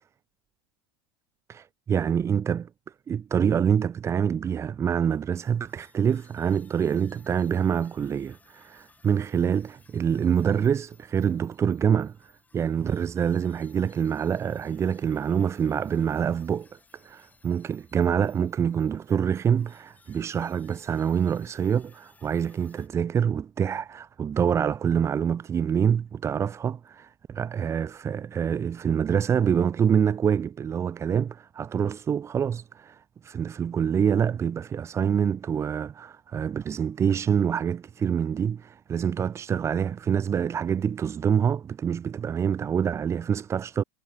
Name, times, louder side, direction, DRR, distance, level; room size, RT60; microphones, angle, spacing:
voice 1, 1.5-2.7 3.1-16.7 17.0-43.8, right 8 dB, 20° right, 1.1 m, -26 dB
sound 1, 5.1-22.9, left 4 dB, 10° left, 7.8 m, -60 dB
supercardioid pair, 140°, 13 cm